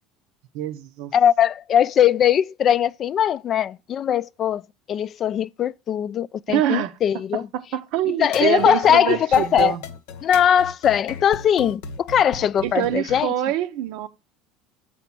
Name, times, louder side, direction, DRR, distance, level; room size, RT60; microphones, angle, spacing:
voice 1, 0.5-1.1 6.5-7.0 7.5-9.8 12.6-14.1, right 12 dB, 70° right, 0.6 m, -25 dB
voice 2, 1.1-4.6 4.9-7.5 8.2-9.8 10.2-13.3, left 9 dB, 45° left, 0.3 m, -20 dB
sound 1, 8.2-13.2, left 5 dB, 80° left, 0.8 m, -36 dB
6.7 x 4.2 x 5.9 m
hypercardioid pair, 85°, 0 cm